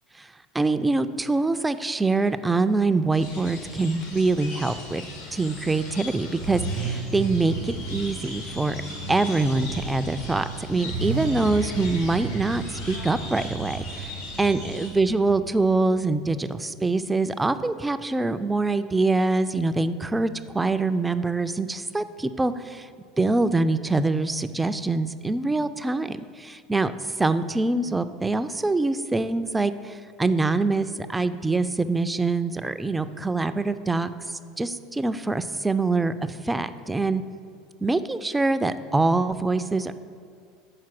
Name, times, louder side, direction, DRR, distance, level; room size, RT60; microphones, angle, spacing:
voice 1, 0.5-5.0 5.3-8.8 9.1-22.9 23.2-26.9 27.2-34.1 34.6-37.2 37.8-39.9, right 3 dB, 10° right, 12 dB, 0.3 m, -24 dB
sound 1, 3.1-14.9, left 3 dB, 75° left, 1.4 m, -39 dB
Car / Idling / Accelerating revving vroom, 4.2-16.3, right 4 dB, 80° right, 0.8 m, -35 dB
5.8 x 4.5 x 5.9 m, 2.2 s
hypercardioid pair, 75°, 0 cm